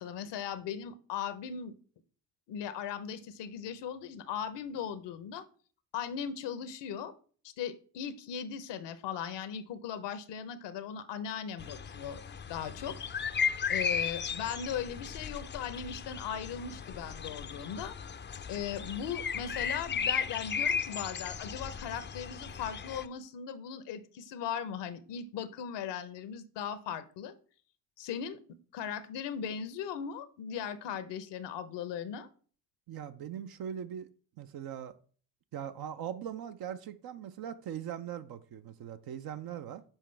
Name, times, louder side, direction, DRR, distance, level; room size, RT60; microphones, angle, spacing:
voice 1, 0.0-1.7 2.5-5.4 5.9-7.1 7.6-12.2 12.5-13.0 13.7-18.0 18.5-27.3 28.0-28.4 28.7-32.3, left 8 dB, 65° left, 0.8 m, -38 dB
sound 1, 11.6-23.0, left 6 dB, 25° left, 0.5 m, -35 dB
voice 2, 32.9-34.1 34.4-34.9 35.5-39.8, right 9 dB, 50° right, 0.6 m, -40 dB
7.2 x 5.0 x 3.3 m
hypercardioid pair, 50°, 46 cm